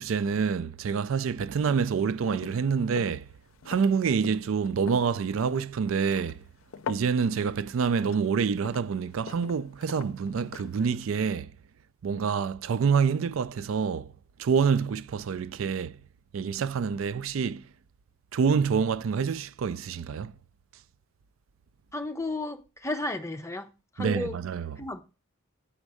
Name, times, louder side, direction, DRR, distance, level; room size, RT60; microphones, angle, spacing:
voice 1, 0.0-3.3 3.7-6.4 6.9-11.5 12.0-14.1 14.4-16.0 16.3-17.6 18.3-20.3 24.0-24.8, right 6 dB, 75° right, 0.4 m, -27 dB
sound 1, 1.5-11.1, left 6 dB, 80° left, 0.6 m, -44 dB
voice 2, 21.9-23.7 24.0-24.4 24.8-25.0, left 2 dB, 15° left, 0.7 m, -33 dB
8.5 x 5.3 x 4.8 m
head